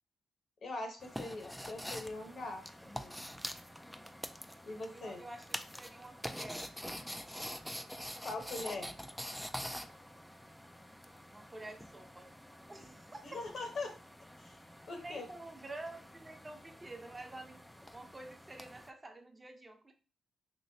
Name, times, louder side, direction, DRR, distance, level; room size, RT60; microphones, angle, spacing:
voice 1, 0.6-3.3 4.6-5.2 8.2-9.0 13.2-14.0 14.4-14.6 14.9-15.2, left 3 dB, 60° left, 3 dB, 0.9 m, -42 dB
sound 1, 1.0-18.9, equal, 5° left, 0.3 m, -46 dB
voice 2, 4.9-6.7 11.3-12.3 12.7-13.4 15.0-17.6 17.9-19.9, right 2 dB, 25° right, 5 dB, 0.7 m, -49 dB
3.0 x 3.0 x 2.7 m, 0.36 s
supercardioid pair, 50°, 0 cm